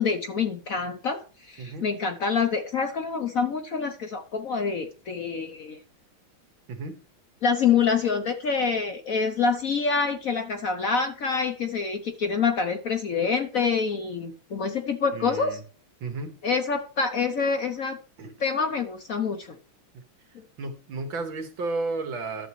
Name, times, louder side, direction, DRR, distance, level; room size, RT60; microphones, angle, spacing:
voice 1, 0.0-5.8 7.4-15.6 16.4-18.0 18.4-19.6, left 5 dB, 55° left, 6 dB, 1.0 m, -26 dB
voice 2, 1.6-1.9 6.7-7.0 15.1-15.6 16.0-16.4 18.2-18.3 19.9-20.0 20.6-22.5, right 3 dB, 70° right, 5 dB, 2.5 m, -33 dB
12.0 x 7.2 x 3.2 m, 0.37 s
omnidirectional pair, 2.2 m